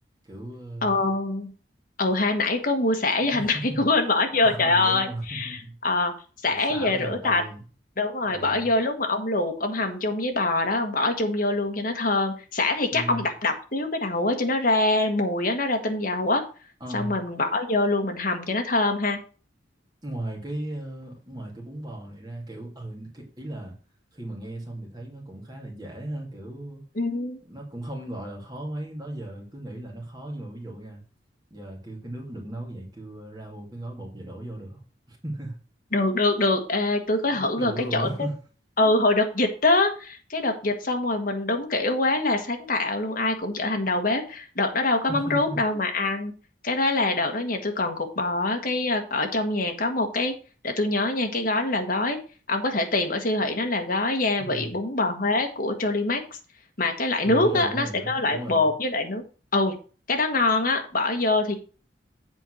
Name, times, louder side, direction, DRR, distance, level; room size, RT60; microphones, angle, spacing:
voice 1, 0.2-1.1 3.2-3.8 4.3-5.7 6.5-7.6 8.2-8.7 12.9-13.3 16.8-17.2 20.0-23.7 24.1-26.8 27.4-31.0 31.5-34.8 35.1-35.6 37.3-38.3 45.1-45.6 54.4-54.8 57.2-58.7, right 1 dB, 20° right, 2.3 m, -36 dB
voice 2, 0.8-1.5 2.0-6.1 6.4-7.4 8.0-16.4 16.9-19.2 26.9-27.4 35.9-38.3 38.8-46.3 46.6-50.3 50.6-52.2 52.5-56.2 56.8-59.2 59.5-59.8 60.1-61.6, left 2 dB, 50° left, 1.4 m, -24 dB
7.9 x 4.4 x 6.3 m
head